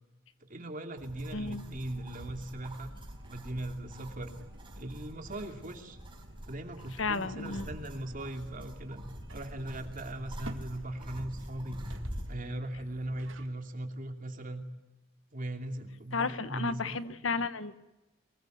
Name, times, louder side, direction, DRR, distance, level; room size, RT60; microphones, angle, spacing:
voice 1, 0.5-2.9 3.3-4.3 4.8-6.0 6.4-9.0 9.3-12.0 12.3-14.6 15.3-17.0, right 1 dB, 45° right, 5 dB, 2.9 m, -39 dB
sound 1, 1.0-12.3, equal, 25° right, 4.9 m, -45 dB
voice 2, 1.3-1.6 7.0-7.7 16.1-17.8, left 4 dB, 80° left, 13 dB, 1.3 m, -33 dB
sound 2, 1.3-13.5, right 1 dB, 75° right, 2.2 m, -53 dB
24.0 x 21.5 x 9.4 m, 1.0 s
head